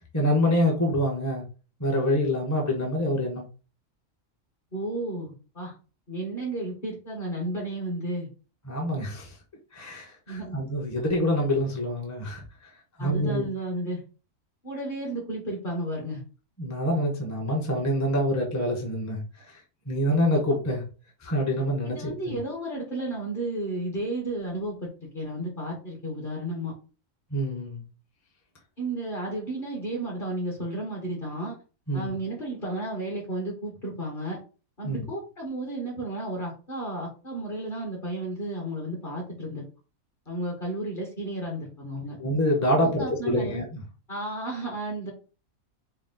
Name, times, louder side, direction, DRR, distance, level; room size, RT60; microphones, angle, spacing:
voice 1, 0.1-1.5 1.8-3.5 8.7-9.4 9.7-12.4 13.0-13.5 16.6-19.6 19.9-20.8 21.2-22.4 27.3-27.8 31.9-32.2 34.8-35.0 42.2-43.8, left 1 dB, 15° left, 0.6 m, -26 dB
voice 2, 4.7-5.7 6.1-8.3 10.3-10.6 13.0-14.0 14.6-16.2 21.8-26.7 28.8-31.5 31.9-34.4 34.8-39.6 40.3-42.2 42.8-43.6 44.1-45.1, right 1 dB, 40° left, 1.3 m, -33 dB
4.5 x 2.1 x 3.7 m
omnidirectional pair, 1.4 m